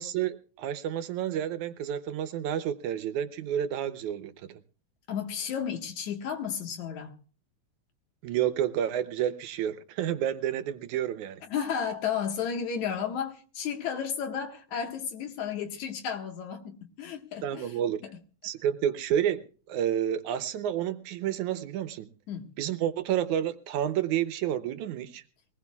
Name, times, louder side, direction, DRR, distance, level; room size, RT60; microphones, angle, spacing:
voice 1, 0.0-4.3 8.2-11.4 17.4-18.0 18.4-22.1 22.6-25.2, right 10 dB, 75° right, 2.2 m, -30 dB
voice 2, 5.1-7.1 11.5-17.7 18.0-18.1 22.3-22.5, left 7 dB, 65° left, 2.8 m, -33 dB
22.5 x 19.0 x 2.4 m
omnidirectional pair, 3.6 m